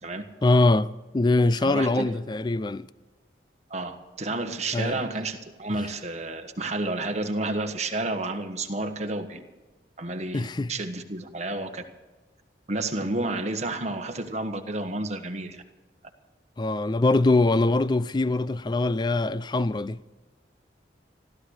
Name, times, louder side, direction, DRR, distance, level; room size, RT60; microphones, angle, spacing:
voice 1, 0.4-2.9 4.7-5.0 10.3-10.7 16.6-20.0, left 2 dB, 25° left, 0.4 m, -23 dB
voice 2, 1.6-2.2 3.7-9.4 10.0-11.8 12.7-15.6, right 2 dB, 40° right, 1.4 m, -31 dB
15.5 x 13.0 x 6.5 m
head